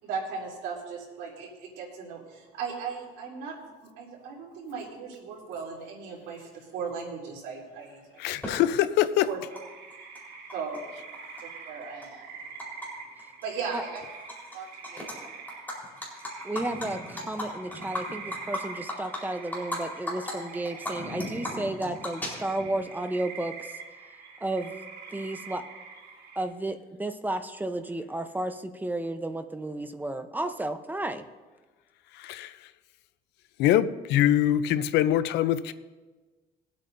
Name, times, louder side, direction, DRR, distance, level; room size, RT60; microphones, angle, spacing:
voice 1, 0.0-8.0 9.3-9.4 10.5-10.8 11.7-12.3 13.4-14.0 14.5-15.2, right 5 dB, 90° right, -3 dB, 3.3 m, -37 dB
voice 2, 8.2-9.3 32.1-32.6 33.6-35.7, left 12 dB, 85° left, 14 dB, 0.6 m, -24 dB
Animal, 8.4-8.5 9.6-9.7 9.9-10.8 11.1-12.9 13.2-13.4 13.7-14.6 14.8-15.1 15.5-19.8 20.1-20.3 20.7-22.8, left 1 dB, 10° left, 4.2 m, -36 dB
sound 1, 9.5-26.4, right 5 dB, 60° right, 2.6 m, -45 dB
voice 3, 16.4-23.7 24.4-24.7 25.1-25.6 26.4-31.2, right 2 dB, 10° right, 8 dB, 0.8 m, -32 dB
22.0 x 8.5 x 2.7 m, 1.3 s
cardioid pair, 110°, 17 cm